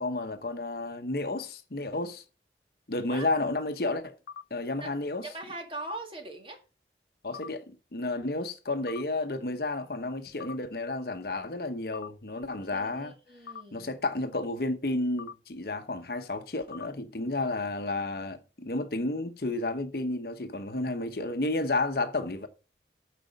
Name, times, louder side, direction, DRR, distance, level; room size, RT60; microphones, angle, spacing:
voice 1, 0.0-2.2 2.9-4.1 4.5-5.3 7.2-13.1 13.7-22.5, left 2 dB, 60° left, 0.9 m, -31 dB
sound 1, 4.3-4.4 5.8-5.9 7.3-7.5 8.9-9.0 10.4-10.5 11.9-12.1 13.5-13.6 15.2-15.3 16.7-16.9, left 7 dB, 85° left, 0.3 m, -41 dB
voice 2, 5.2-6.6 12.6-13.9, right 2 dB, 30° right, 1.8 m, -41 dB
9.3 x 5.1 x 5.1 m
head